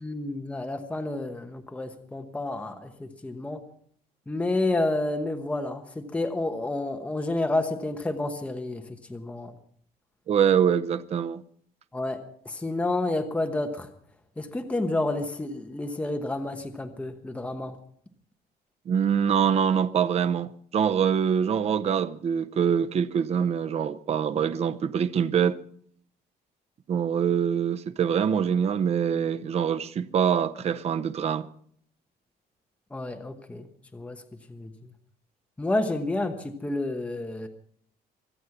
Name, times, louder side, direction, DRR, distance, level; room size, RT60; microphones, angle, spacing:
voice 1, 0.0-3.6 4.3-8.8 9.1-9.5 11.9-12.2 12.4-13.9 14.4-17.7 32.9-33.7 33.9-34.2 34.5-34.7 35.6-37.5, left 2 dB, 10° left, 1.1 m, -30 dB
voice 2, 10.3-11.4 18.9-25.6 26.9-31.5, right 8 dB, 40° right, 0.7 m, -24 dB
24.0 x 8.3 x 6.0 m
cardioid pair, 155°, 17 cm